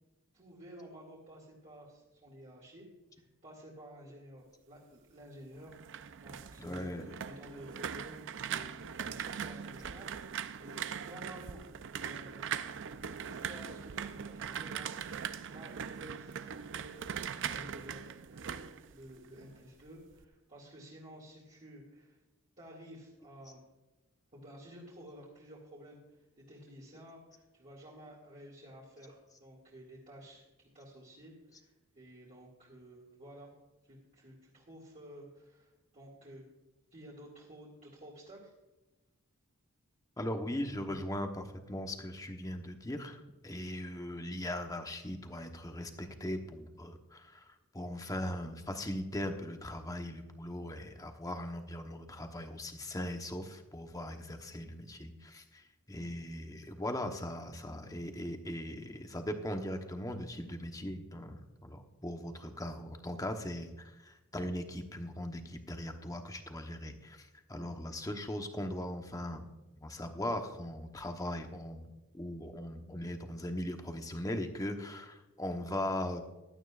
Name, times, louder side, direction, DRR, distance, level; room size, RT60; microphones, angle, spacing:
voice 1, 0.3-2.9 3.1-11.6 12.0-12.3 13.2-22.2 22.6-23.7 24.3-33.5 33.9-36.4 36.9-38.5, right 1 dB, 35° right, -6 dB, 2.3 m, -52 dB
sound 1, 5.6-19.6 19.9-20.3, right 8 dB, 60° right, 0.5 m, -41 dB
voice 2, 6.6-7.0 40.2-69.5 69.8-71.9 72.1-76.2, left 1 dB, 15° left, 5 dB, 1.0 m, -39 dB
16.0 x 12.0 x 2.5 m, 1.1 s
head